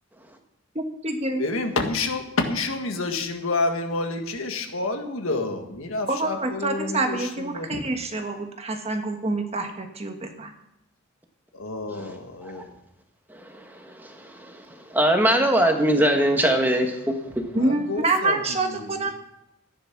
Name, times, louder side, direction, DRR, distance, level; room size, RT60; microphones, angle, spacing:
voice 1, 0.7-1.5 6.1-10.5 17.5-19.1, right 2 dB, 30° right, 5 dB, 1.4 m, -26 dB
voice 2, 1.4-7.2 7.5-7.8 11.6-12.7 17.6-18.4 18.7-19.1, left 3 dB, 80° left, 5 dB, 1.8 m, -28 dB
voice 3, 13.3-13.6 13.9-14.6 14.9-17.1, right 1 dB, 10° right, 3 dB, 1.5 m, -22 dB
14.0 x 10.0 x 6.0 m, 0.83 s
head